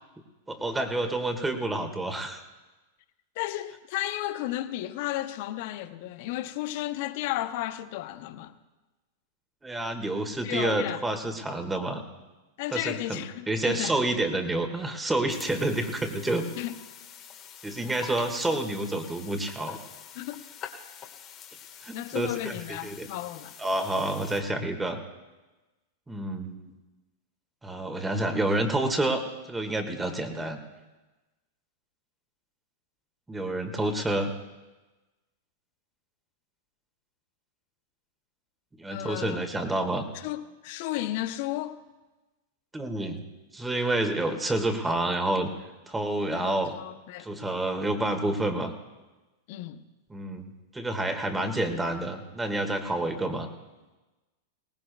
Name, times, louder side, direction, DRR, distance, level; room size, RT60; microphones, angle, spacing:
voice 1, 0.5-2.4 9.6-12.0 12.7-13.2 13.5-16.4 17.6-19.8 21.8-23.1 23.6-25.0 26.1-26.7 27.6-30.6 33.3-34.3 38.8-40.1 42.7-43.2 43.5-45.5 45.9-46.7 47.2-48.7 50.1-53.5, right 2 dB, 10° right, 1.7 m, -29 dB
voice 2, 3.4-8.5 10.4-11.4 12.6-14.0 16.6-16.7 20.1-20.4 21.9-23.5 33.9-34.0 38.9-39.4 40.1-41.8 46.3-47.3 49.5-49.8, left 15 dB, 55° left, 0.7 m, -33 dB
sound 1, 15.3-24.4, left 9 dB, 35° left, 1.5 m, -46 dB
21.0 x 18.5 x 2.3 m
hypercardioid pair, 105°, 0 cm